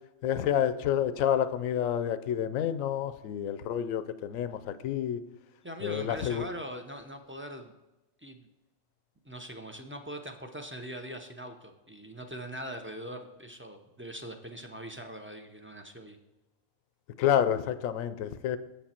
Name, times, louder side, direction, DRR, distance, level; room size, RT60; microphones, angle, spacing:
voice 1, 0.2-5.2 5.8-6.5 17.2-18.6, left 10 dB, 80° left, 12 dB, 1.0 m, -29 dB
voice 2, 5.6-7.7 8.2-8.5 9.2-16.2, equal, 15° right, 5 dB, 0.5 m, -42 dB
7.8 x 7.2 x 4.3 m, 1.0 s
omnidirectional pair, 1.4 m